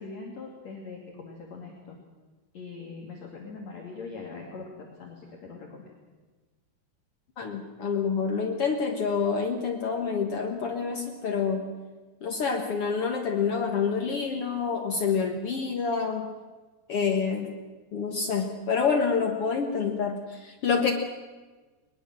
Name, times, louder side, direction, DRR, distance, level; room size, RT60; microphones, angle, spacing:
voice 1, 0.0-2.0 2.5-5.9, left 4 dB, 45° left, 0 dB, 3.2 m, -42 dB
voice 2, 7.4-11.7 12.2-16.3 16.9-17.5 17.9-20.9, left 5 dB, 85° left, 3 dB, 1.2 m, -27 dB
21.5 x 21.5 x 7.6 m, 1.3 s
omnidirectional pair, 5.1 m